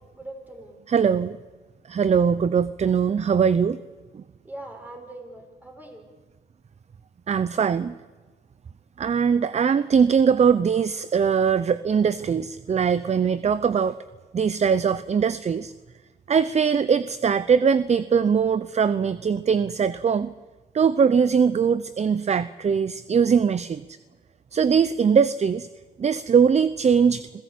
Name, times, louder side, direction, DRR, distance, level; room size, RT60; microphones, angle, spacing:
voice 1, 0.0-0.8 4.4-6.1, right 1 dB, 10° right, 3 dB, 5.8 m, -41 dB
voice 2, 0.9-1.4 1.9-3.8 4.1-4.2 7.3-8.0 9.0-14.0 14.3-15.7 16.3-20.3 20.7-23.8 24.5-25.7 26.0-27.4, right 6 dB, 35° right, 15 dB, 0.7 m, -21 dB
26.5 x 16.0 x 8.5 m, 1.3 s
cardioid pair, 90°, 20 cm